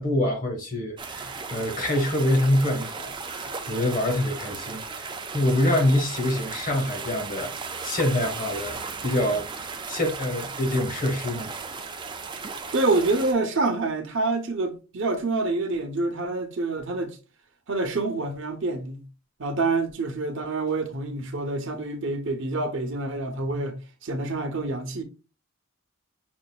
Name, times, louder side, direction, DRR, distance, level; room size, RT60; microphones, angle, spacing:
voice 1, 0.0-11.5, left 1 dB, 40° left, 1.1 m, -26 dB
sound 1, 1.0-13.3, right 4 dB, 20° right, 0.3 m, -36 dB
voice 2, 12.7-17.2 17.7-19.0 19.4-25.0, right 3 dB, 60° right, 0.8 m, -27 dB
5.9 x 2.5 x 2.3 m
head